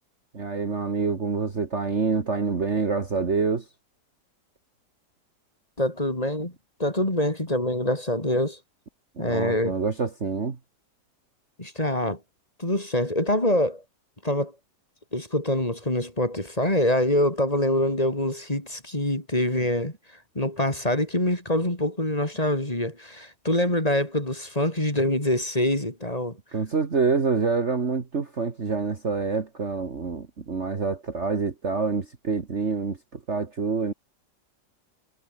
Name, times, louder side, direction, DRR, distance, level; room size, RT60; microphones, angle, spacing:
voice 1, 0.3-3.7 9.2-10.6 26.5-33.0 33.3-33.9, right 4 dB, 40° right, 1.9 m, -26 dB
voice 2, 5.8-6.5 6.8-8.6 9.2-9.7 11.6-12.2 12.6-13.8 14.2-14.5 15.1-19.9 20.3-26.4, left 1 dB, 20° left, 4.4 m, -25 dB
omnidirectional pair, 1.9 m